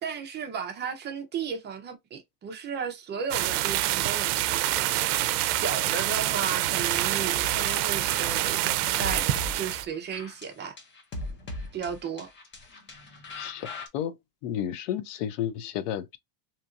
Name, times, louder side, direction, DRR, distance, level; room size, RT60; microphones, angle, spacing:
voice 1, 0.0-4.9 5.2-8.6 9.0-10.8 11.7-12.3, right 6 dB, 25° right, 0.5 m, -35 dB
sound 1, 3.3-9.9, right 15 dB, 70° right, 0.5 m, -26 dB
sound 2, 7.0-13.9, left 2 dB, 25° left, 0.6 m, -40 dB
voice 2, 13.4-14.1 14.4-16.2, left 10 dB, 75° left, 0.6 m, -32 dB
2.9 x 2.7 x 2.4 m
supercardioid pair, 135°, 47 cm